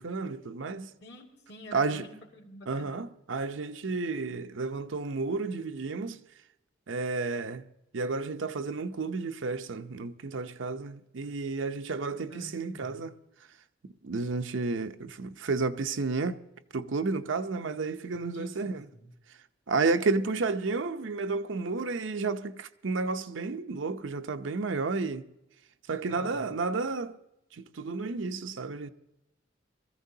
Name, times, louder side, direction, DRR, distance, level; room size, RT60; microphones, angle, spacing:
voice 1, 0.0-0.9 1.7-2.0 2.7-6.2 6.9-7.6 7.9-13.1 14.0-16.4 16.7-18.9 19.7-25.2 25.9-27.2 27.5-28.9, right 3 dB, 80° right, 0.6 m, -31 dB
voice 2, 1.0-2.9 12.3-13.1 18.3-19.1 26.1-26.5, left 1 dB, 60° left, 2.1 m, -47 dB
22.0 x 14.5 x 2.8 m
head